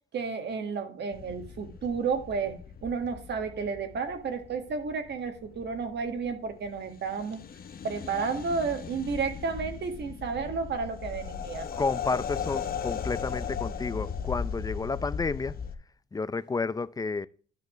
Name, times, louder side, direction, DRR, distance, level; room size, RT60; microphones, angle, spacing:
voice 1, 0.1-7.4 7.8-11.7, right 5 dB, 60° right, 1.7 m, -32 dB
sound 1, 1.1-15.8, left 7 dB, 50° left, 0.9 m, -38 dB
voice 2, 11.8-15.6 16.1-17.3, left 4 dB, 20° left, 0.5 m, -31 dB
11.5 x 5.9 x 3.1 m
cardioid pair, 90°, 20 cm